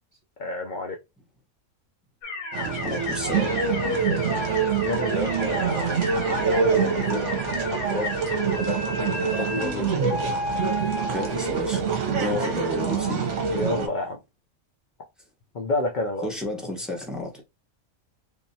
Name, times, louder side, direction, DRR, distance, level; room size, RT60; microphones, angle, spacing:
voice 1, 0.4-1.0 4.8-6.0 6.4-7.3 7.6-8.1 8.6-10.0 12.1-12.5 13.5-14.2 15.5-16.3, left 2 dB, 50° left, 0.5 m, -30 dB
sound 1, 2.2-11.4, left 2 dB, 80° left, 1.5 m, -33 dB
sound 2, 2.5-13.9, right 5 dB, 60° right, 1.2 m, -25 dB
voice 2, 2.8-3.5 11.1-13.3 16.2-17.4, left 1 dB, ahead, 1.0 m, -32 dB
3.6 x 3.0 x 2.8 m
omnidirectional pair, 1.5 m